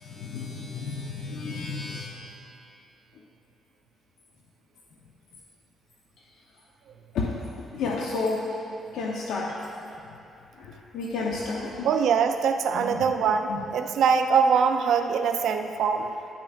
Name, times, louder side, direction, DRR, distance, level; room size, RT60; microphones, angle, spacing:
voice 1, 0.0-2.1 7.1-8.5 8.9-9.6 10.6-11.9 12.7-12.9 13.5-13.6, left 3 dB, 80° left, -1 dB, 0.7 m, -31 dB
voice 2, 11.8-16.1, right 6 dB, 75° right, 6 dB, 0.5 m, -23 dB
9.9 x 8.7 x 2.4 m, 3.0 s
cardioid pair, 90°, 0 cm